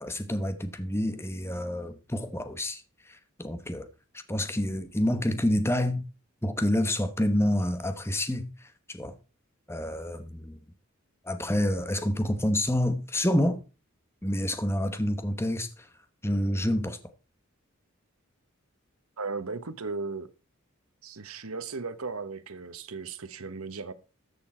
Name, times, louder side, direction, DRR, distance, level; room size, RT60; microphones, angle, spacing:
voice 1, 0.0-3.9 4.1-6.1 6.4-9.2 9.7-10.6 11.2-13.6 14.2-15.9 16.2-17.0, left 1 dB, 10° left, 1.0 m, -28 dB
voice 2, 19.2-20.3 21.0-23.9, right 4 dB, 85° right, 1.1 m, -36 dB
13.5 x 6.7 x 4.4 m
head